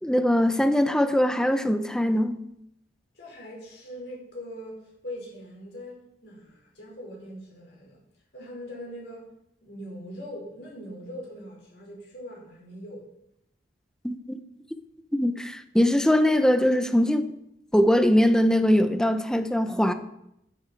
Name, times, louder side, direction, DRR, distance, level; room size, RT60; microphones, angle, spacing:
voice 1, 0.0-2.4 14.0-14.4 15.1-17.3 17.7-19.9, equal, 5° left, 0.7 m, -22 dB
voice 2, 3.1-8.0 8.3-9.3 9.6-13.1, equal, 70° left, 5.5 m, -41 dB
14.5 x 10.0 x 4.6 m
head